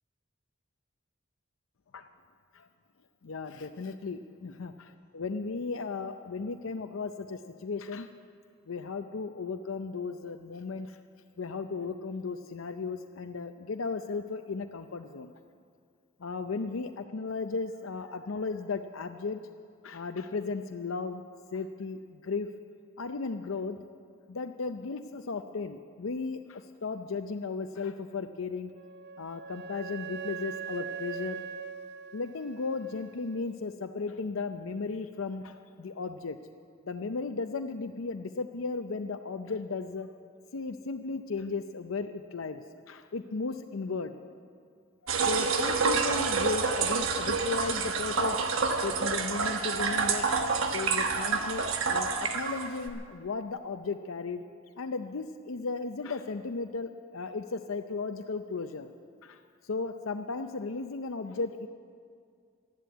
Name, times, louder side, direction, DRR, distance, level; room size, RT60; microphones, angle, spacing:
voice 1, 3.2-4.7 5.1-8.1 8.7-11.0 11.4-15.3 16.2-19.4 19.8-21.2 21.5-22.5 23.0-23.8 24.3-28.7 29.2-31.4 32.1-36.4 36.9-40.1 40.5-44.2 45.0-48.4 48.8-50.3 50.7-54.4 54.8-58.9 59.2-61.7, left 4 dB, 85° left, 7 dB, 0.6 m, -35 dB
Wind instrument woodwind instrument, 28.7-33.4, right 7 dB, 55° right, 0.5 m, -41 dB
sound 1, 45.1-52.9, right 4 dB, 85° right, 1.2 m, -28 dB
13.0 x 11.5 x 9.4 m, 2.2 s
head